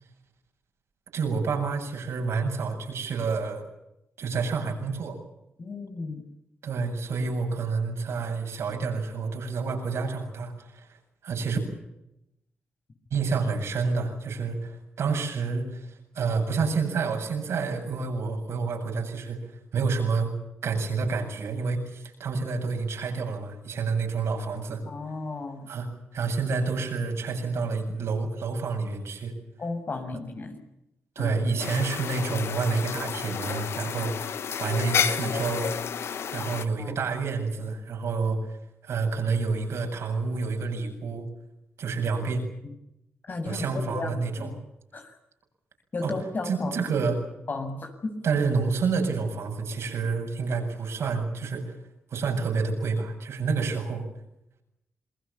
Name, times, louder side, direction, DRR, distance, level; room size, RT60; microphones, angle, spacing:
voice 1, 1.1-3.6 4.2-5.2 6.6-10.9 11.2-11.6 13.1-19.4 19.7-20.3 20.6-24.8 25.7-29.3 31.2-35.7 36.3-38.4 38.8-41.2 41.8-42.4 43.4-44.5 46.0-46.1 46.4-47.2 48.2-51.8 52.1-54.0, right 4 dB, 75° right, 3 dB, 7.8 m, -28 dB
voice 2, 5.6-6.2 24.9-25.7 29.6-30.6 31.2-31.4 36.8-36.9 42.6-42.7 43.3-44.6 44.9-45.1 45.9-46.8 47.5-48.1, left 3 dB, 45° left, 6 dB, 7.3 m, -34 dB
sound 1, 31.6-36.6, left 7 dB, 70° left, 1.5 m, -31 dB
28.5 x 21.0 x 7.2 m, 0.86 s
cardioid pair, 65°, 5 cm